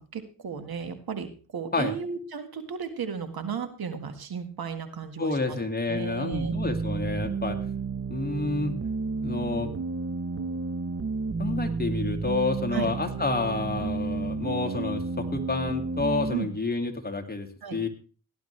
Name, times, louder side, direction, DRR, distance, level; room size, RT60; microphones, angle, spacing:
voice 1, 0.0-5.6 5.9-6.5 12.7-12.9 16.3-16.5 17.6-17.8, right 6 dB, 65° right, 8 dB, 1.9 m, -34 dB
voice 2, 5.2-7.6 8.1-8.8 9.2-9.7 11.4-17.5 17.7-17.9, left 3 dB, 25° left, 5 dB, 2.3 m, -29 dB
sound 1, 6.3-16.3, right 4 dB, 35° right, 1.0 m, -31 dB
17.5 x 11.0 x 3.3 m, 0.36 s
cardioid pair, 75°, 39 cm